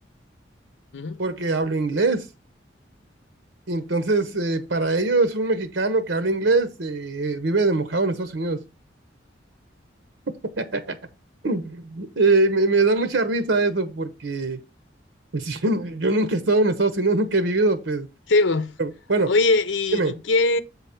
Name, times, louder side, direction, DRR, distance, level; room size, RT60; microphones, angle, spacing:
voice 1, 1.2-2.3 3.7-8.6 10.6-11.0 11.4-14.6 15.3-18.1 18.8-19.3 19.9-20.1, right 3 dB, 80° right, 0.9 m, -22 dB
voice 2, 18.3-18.7 19.3-20.6, left 3 dB, 85° left, 0.7 m, -21 dB
7.9 x 4.1 x 5.7 m
head